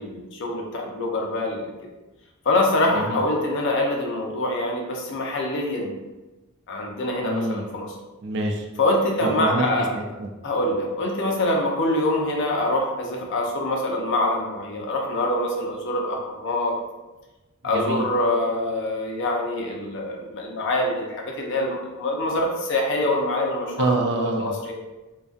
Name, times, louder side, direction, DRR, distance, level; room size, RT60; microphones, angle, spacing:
voice 1, 0.0-1.7 2.4-5.9 6.7-7.9 8.8-10.0 10.4-16.8 17.6-24.0 24.4-24.7, left 1 dB, 60° left, 0 dB, 0.5 m, -25 dB
voice 2, 7.2-7.7 8.2-8.7 9.2-9.7 9.9-10.3 17.7-18.0 23.8-24.7, right 2 dB, 55° right, 2 dB, 0.4 m, -26 dB
2.5 x 2.2 x 2.3 m, 1.1 s
head